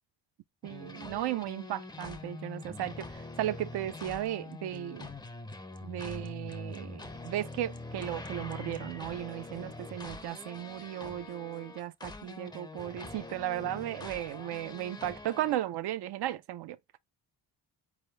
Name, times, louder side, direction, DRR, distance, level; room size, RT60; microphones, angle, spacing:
sound 1, 0.6-15.6, left 2 dB, 10° left, 0.5 m, -44 dB
voice 1, 0.6-5.1 5.8-17.0, right 13 dB, 70° right, 0.5 m, -35 dB
4.4 x 3.6 x 3.2 m
cardioid pair, 120°, 41 cm